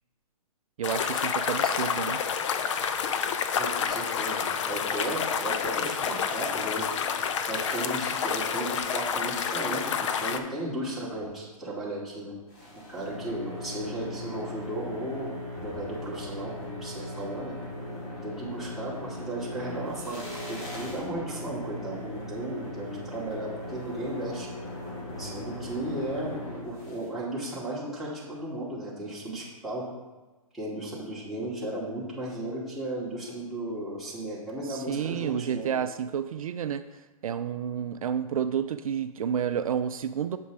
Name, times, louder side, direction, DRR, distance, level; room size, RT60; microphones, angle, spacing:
sound 1, 0.8-10.4, left 7 dB, 55° left, 0.7 m, -29 dB
voice 1, 0.8-2.2 34.6-40.4, right 8 dB, 70° right, 10 dB, 0.4 m, -30 dB
voice 2, 3.6-6.9 7.5-12.3 12.9-15.3 15.6-17.5 18.2-24.5 25.2-29.9 30.5-35.8, right 1 dB, ahead, -9 dB, 2.5 m, -35 dB
sound 2, 12.5-27.1, left 1 dB, 35° left, 2.4 m, -38 dB
8.1 x 6.6 x 3.7 m, 1.2 s
hypercardioid pair, 130°, 19 cm